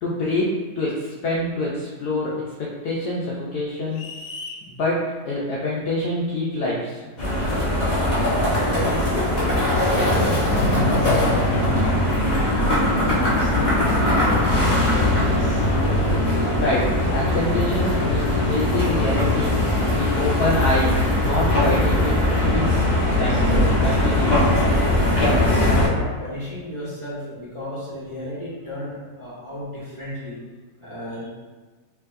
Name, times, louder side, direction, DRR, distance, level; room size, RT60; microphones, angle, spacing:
voice 1, 0.0-4.0 4.7-7.0 16.6-19.5 20.0-22.2 22.5-22.7 23.2-23.5 23.8-24.5, left 1 dB, 70° left, -5 dB, 1.0 m, -26 dB
sound 1, 3.9-4.6, left 3 dB, 85° left, 1.4 m, -36 dB
sound 2, 7.2-25.9, left 1 dB, 30° left, 0.9 m, -20 dB
voice 2, 8.3-12.1 12.5-15.7 25.6-30.4 30.8-31.3, left 1 dB, 15° right, -11 dB, 1.4 m, -34 dB
4.7 x 3.2 x 2.5 m, 1.3 s
omnidirectional pair, 2.2 m